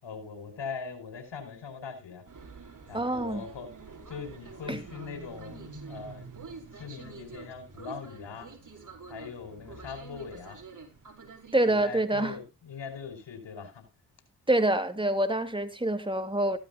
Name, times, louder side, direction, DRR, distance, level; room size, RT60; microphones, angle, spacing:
voice 1, 0.0-2.2 2.9-3.8 4.1-6.3 6.7-8.5 9.1-10.6 11.7-13.8, left 5 dB, 65° left, 5.2 m, -41 dB
sound 1, 2.3-11.9, right 4 dB, 40° right, 4.6 m, -47 dB
voice 2, 2.9-3.4 4.7-4.8 11.5-12.4 14.5-16.6, right 1 dB, 10° right, 2.7 m, -26 dB
15.5 x 12.5 x 2.5 m
supercardioid pair, 45°, 46 cm